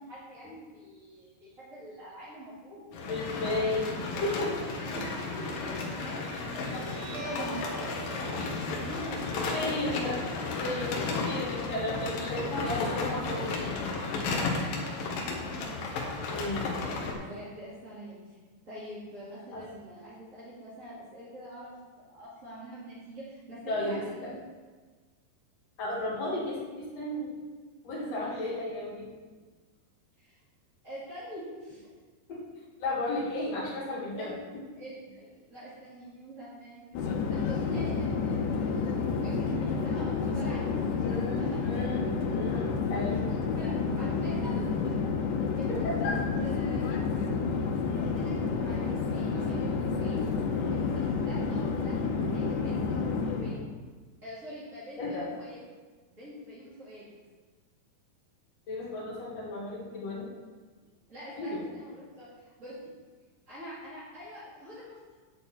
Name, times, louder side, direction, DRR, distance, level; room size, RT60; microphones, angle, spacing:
voice 1, 0.0-2.9 4.9-5.1 5.4-6.3 6.5-10.0 10.3-10.4 10.8-11.4 15.0-15.9 17.2-18.2 18.7-24.4 28.1-28.3 30.2-30.4 30.8-31.9 34.2-34.4 34.8-37.0 37.3-41.6 43.3-44.9 45.5-47.1 47.9-50.3 50.7-53.7 54.2-55.6 56.1-57.1 61.1-62.8 63.5-65.0, equal, 20° right, -12 dB, 2.4 m, -44 dB
sound 1, 2.9-17.1, left 3 dB, 65° left, 2.7 m, -33 dB
voice 2, 3.0-4.6 9.5-10.2 10.6-13.9 16.3-16.9 19.5-19.6 23.7-24.3 25.8-27.3 27.8-29.1 32.3-32.4 32.8-34.3 41.0-43.3 45.7-46.2 55.0-55.3 58.7-60.3 61.4-61.7, left 2 dB, 45° left, -6 dB, 3.1 m, -34 dB
Guitar, 6.4-13.4, right 3 dB, 75° right, 1.5 m, -46 dB
Conversation / Chatter / Fixed-wing aircraft airplane, 36.9-53.6, left 5 dB, 90° left, 3.1 m, -30 dB
9.1 x 8.8 x 4.5 m, 1.4 s
omnidirectional pair, 4.9 m